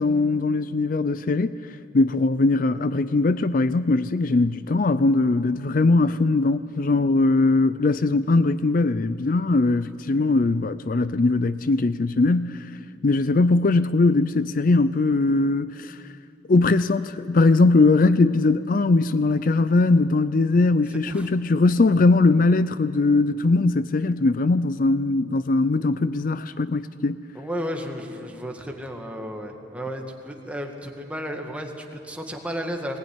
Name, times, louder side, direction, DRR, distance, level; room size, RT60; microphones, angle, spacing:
voice 1, 0.0-1.5 1.9-12.7 13.0-16.0 16.5-27.2, left 3 dB, 50° left, 0.5 m, -20 dB
voice 2, 27.3-33.0, equal, 5° right, 1.9 m, -33 dB
19.5 x 19.5 x 9.7 m
head